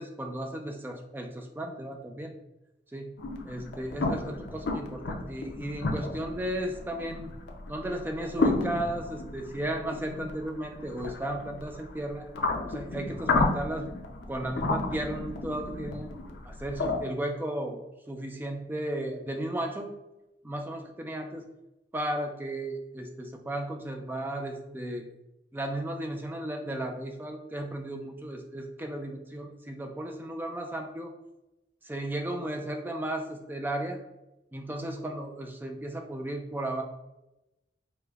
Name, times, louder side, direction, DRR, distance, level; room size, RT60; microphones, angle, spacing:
voice 1, 0.0-2.3 2.9-3.1 3.4-7.3 7.7-12.3 12.7-13.9 14.3-16.1 16.4-19.9 20.4-21.4 21.9-25.1 25.5-31.1 31.8-34.0 34.5-36.8, right 1 dB, 10° right, 3 dB, 0.3 m, -34 dB
sound 1, 3.2-17.0, left 3 dB, 70° left, 0.4 m, -33 dB
4.9 x 2.1 x 2.3 m, 0.95 s
head